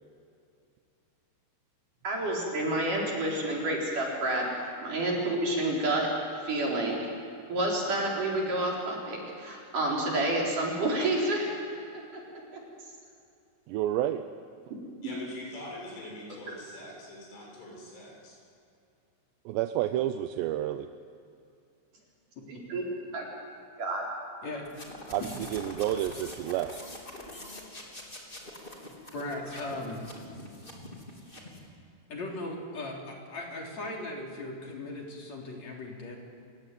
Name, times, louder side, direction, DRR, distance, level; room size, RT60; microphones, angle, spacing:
voice 1, 2.0-4.5 4.8-6.1 6.4-7.1 7.5-11.5 12.5-12.6 22.5-22.9 23.1-23.3 23.8-24.0, right 1 dB, 40° right, -2 dB, 5.4 m, -29 dB
voice 2, 13.7-14.2 19.5-20.9 25.1-26.7, right 12 dB, 80° right, 9 dB, 2.6 m, -30 dB
voice 3, 15.0-18.4, left 1 dB, 70° left, -3 dB, 9.5 m, -43 dB
sound 1, 24.6-31.7, left 1 dB, 15° left, 2.7 m, -44 dB
voice 4, 29.1-30.0 32.1-36.1, left 2 dB, 40° left, 0 dB, 4.1 m, -38 dB
29.5 x 16.5 x 9.2 m, 2.5 s
omnidirectional pair, 5.7 m